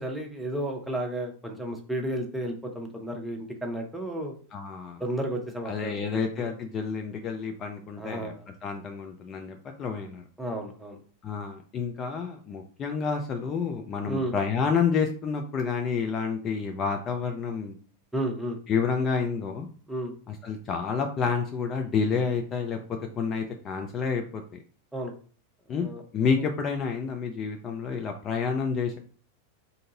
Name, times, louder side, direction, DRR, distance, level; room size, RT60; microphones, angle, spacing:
voice 1, 0.0-4.4 5.0-6.0 6.4-6.5 8.0-8.4 10.4-11.0 14.1-14.3 18.1-18.6 19.9-20.1 24.9-25.1 25.7-26.0, right 1 dB, 5° right, 1 dB, 0.8 m, -32 dB
voice 2, 4.5-5.0 5.6-8.3 8.6-10.2 11.2-17.7 18.7-19.7 20.3-24.4 25.7-29.0, left 5 dB, 30° left, 4 dB, 0.4 m, -29 dB
2.7 x 2.5 x 3.8 m, 0.42 s
figure-of-eight pair, 90°, 0 cm